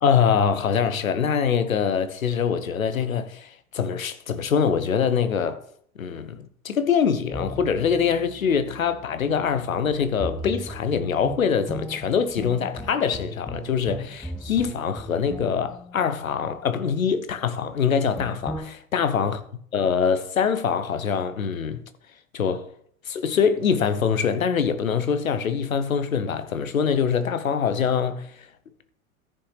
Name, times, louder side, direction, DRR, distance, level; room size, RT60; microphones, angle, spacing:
voice 1, 0.0-5.6 5.9-19.4 19.7-21.8 22.3-22.7 23.0-28.5, left 7 dB, 75° left, 1.0 m, -24 dB
sound 1, 7.3-16.7 18.2-18.6, equal, ahead, 1.6 m, -38 dB
14.0 x 5.7 x 3.4 m
figure-of-eight pair, 85°, 41 cm